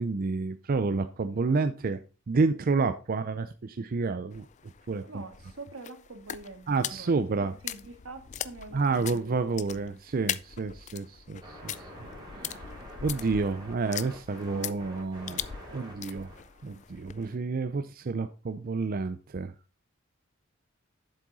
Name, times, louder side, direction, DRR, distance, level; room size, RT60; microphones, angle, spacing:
voice 1, 0.0-2.0 2.3-4.5 4.9-5.2 6.7-7.5 8.7-11.7 12.3-12.6 13.0-15.4 15.7-16.3 16.6-19.5, right 4 dB, 45° right, 0.5 m, -29 dB
sound 1, 4.3-17.3, left 10 dB, 35° left, 0.4 m, -41 dB
voice 2, 5.1-9.4, right 3 dB, 85° right, 1.7 m, -45 dB
sound 2, 11.4-16.9, equal, 20° right, 4.5 m, -47 dB
7.6 x 7.6 x 4.0 m
head